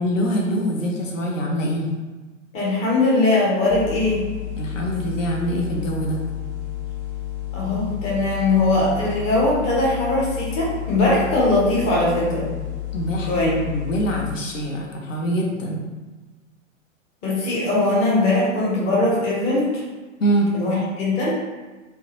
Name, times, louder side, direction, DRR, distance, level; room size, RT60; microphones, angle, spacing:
voice 1, 0.0-1.9 4.6-6.2 12.9-15.8 20.2-20.5, right 1 dB, 75° left, -1 dB, 0.6 m, -24 dB
voice 2, 2.5-4.2 7.5-12.5 13.3-13.6 17.2-19.8 20.5-21.4, left 2 dB, 20° left, -5 dB, 0.5 m, -20 dB
sound 1, 3.7-14.4, left 13 dB, 45° left, 1.0 m, -31 dB
2.3 x 2.1 x 2.7 m, 1.2 s
figure-of-eight pair, 100°, 39 cm